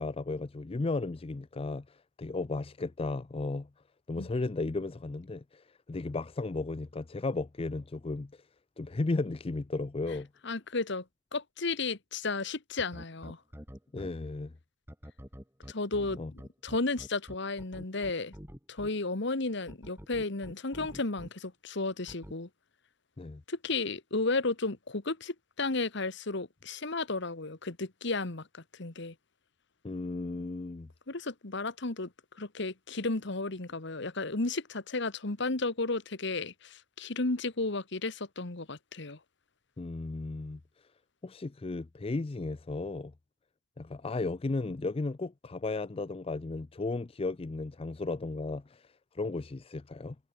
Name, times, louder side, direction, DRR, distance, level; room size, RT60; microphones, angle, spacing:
voice 1, 0.0-3.7 4.1-8.4 8.8-10.3 13.9-14.5 16.2-16.3 23.2-23.4 29.8-30.9 39.8-40.6 41.2-43.1 43.8-50.2, left 3 dB, 30° left, 0.5 m, -35 dB
voice 2, 10.4-11.0 11.3-13.4 15.7-16.2 16.6-18.3 18.7-22.5 23.5-29.1 31.1-32.1 32.4-39.2, left 3 dB, 65° left, 1.6 m, -33 dB
sound 1, 12.8-14.1 14.9-18.9 19.7-21.3 22.1-22.3, equal, 10° right, 5.9 m, -46 dB
head